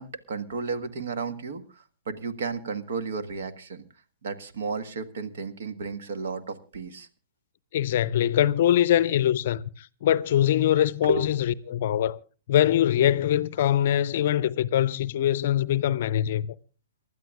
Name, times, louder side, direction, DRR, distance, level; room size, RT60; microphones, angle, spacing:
voice 1, 0.0-3.9 4.2-7.1 11.0-11.3, right 3 dB, 55° right, 1.5 m, -33 dB
voice 2, 7.7-11.4 11.7-12.2 12.5-16.5, left 11 dB, 45° left, 0.6 m, -23 dB
29.0 x 12.5 x 2.4 m
figure-of-eight pair, 115°, 0 cm